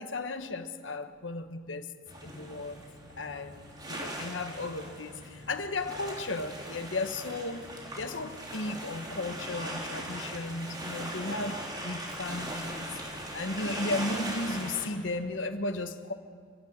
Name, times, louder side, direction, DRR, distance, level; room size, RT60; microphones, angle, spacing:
voice 1, 0.0-1.9 2.2-2.8 3.2-7.7 7.9-16.1, left 2 dB, 85° left, 1.5 m, -35 dB
sound 1, 2.1-14.9, right 1 dB, 20° right, 3.2 m, -40 dB
30.0 x 12.0 x 9.8 m
head